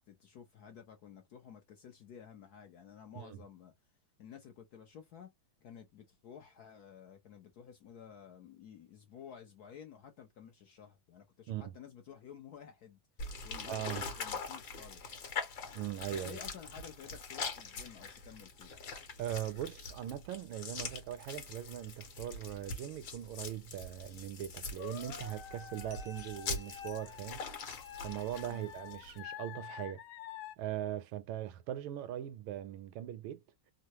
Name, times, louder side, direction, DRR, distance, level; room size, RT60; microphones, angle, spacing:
voice 1, 0.0-3.7 4.2-5.3 5.6-13.0 13.4-15.2 16.1-18.7 28.5-28.7, left 8 dB, 65° left, 0.9 m, -53 dB
sound 1, 13.2-29.2, left 4 dB, 50° left, 1.4 m, -43 dB
voice 2, 13.6-14.0 15.7-16.4 19.2-27.5 28.0-30.0 30.6-33.4, right 12 dB, 80° right, 1.4 m, -40 dB
sound 2, 24.8-30.6, left 10 dB, 90° left, 1.5 m, -48 dB
sound 3, 25.9-28.8, left 1 dB, 60° right, 0.5 m, -59 dB
3.6 x 2.1 x 2.9 m
omnidirectional pair, 2.2 m